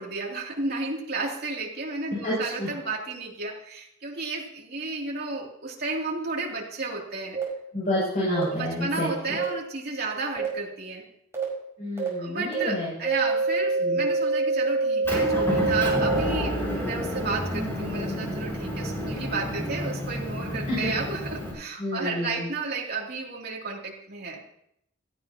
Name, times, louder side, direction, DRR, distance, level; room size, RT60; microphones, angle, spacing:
voice 1, 0.0-7.4 8.5-11.0 12.2-24.4, right 3 dB, 50° right, -2 dB, 3.0 m, -32 dB
voice 2, 2.2-2.7 7.7-9.1 11.8-12.9 13.8-14.0 20.7-20.8 21.8-22.5, left 1 dB, 40° left, -7 dB, 6.9 m, -29 dB
sound 1, 7.3-7.4 8.3-8.4 9.4-9.5 10.4-10.5 11.3-11.4 12.0-12.1 12.5-12.6 13.0-16.2, right 3 dB, 15° right, 5.7 m, -25 dB
Motor vehicle (road) / Engine, 15.0-21.5, equal, 10° left, 5.5 m, -30 dB
17.0 x 14.5 x 3.0 m, 0.73 s
head